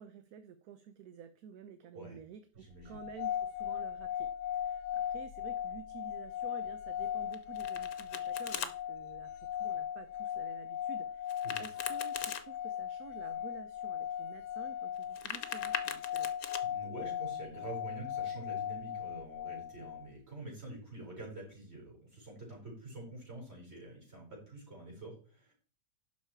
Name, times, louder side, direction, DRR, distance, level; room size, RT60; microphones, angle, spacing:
voice 1, 0.0-16.3, right 8 dB, 70° right, 10 dB, 1.2 m, -51 dB
voice 2, 2.5-3.0 11.4-11.6 16.6-25.5, right 2 dB, 35° right, -1 dB, 5.0 m, -47 dB
sound 1, 2.9-20.1, left 10 dB, 85° left, 1.2 m, -38 dB
Domestic sounds home sounds, 7.3-8.7 11.3-12.4 15.0-16.6, left 8 dB, 65° left, 1.3 m, -40 dB
11.5 x 5.7 x 4.4 m, 0.41 s
omnidirectional pair, 1.8 m